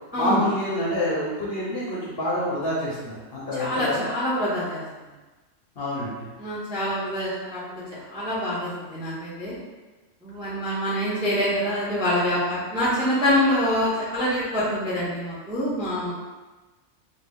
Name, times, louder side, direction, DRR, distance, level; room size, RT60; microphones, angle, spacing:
voice 1, 0.1-4.1 5.8-6.3, left 1 dB, 55° left, -6 dB, 0.7 m, -27 dB
voice 2, 3.5-4.8 6.4-9.5 10.2-16.1, equal, 5° right, -8 dB, 0.4 m, -25 dB
2.7 x 2.2 x 3.5 m, 1.2 s
omnidirectional pair, 1.4 m